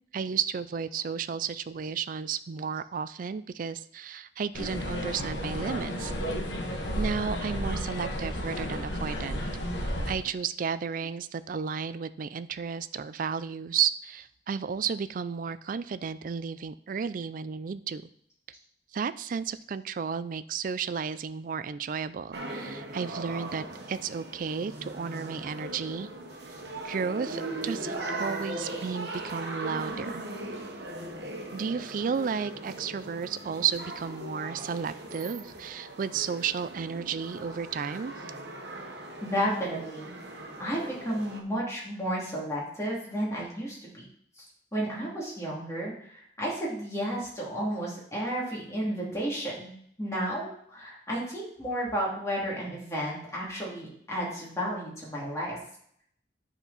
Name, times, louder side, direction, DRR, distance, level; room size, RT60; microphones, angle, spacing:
voice 1, 0.1-6.1 7.0-9.4 10.1-18.0 18.9-26.1 26.8-30.2 31.5-38.1, right 6 dB, 50° right, 14 dB, 0.3 m, -33 dB
sound 1, 4.5-10.1, equal, 80° left, 1.5 m, -32 dB
sound 2, 22.3-41.4, right 2 dB, 70° right, 1.2 m, -39 dB
voice 2, 39.2-40.1 40.6-44.0 44.4-44.5 44.7-49.7 50.0-55.6, equal, 15° left, -5 dB, 2.5 m, -32 dB
10.5 x 4.5 x 4.1 m, 0.66 s
head